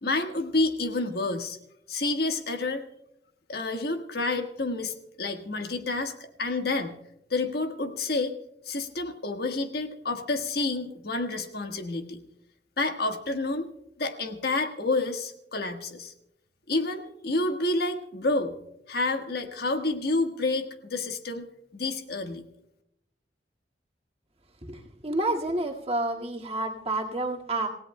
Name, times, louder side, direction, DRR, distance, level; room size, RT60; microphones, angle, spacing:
voice 1, 0.0-1.6 1.9-2.9 3.5-7.0 7.3-8.3 8.6-12.2 12.8-13.7 14.0-16.1 16.7-18.5 18.9-21.5 21.7-22.4, left 2 dB, 60° left, 5 dB, 1.4 m, -29 dB
voice 2, 24.7-27.7, right 2 dB, 35° right, 0 dB, 1.9 m, -29 dB
27.5 x 17.0 x 2.2 m, 0.79 s
head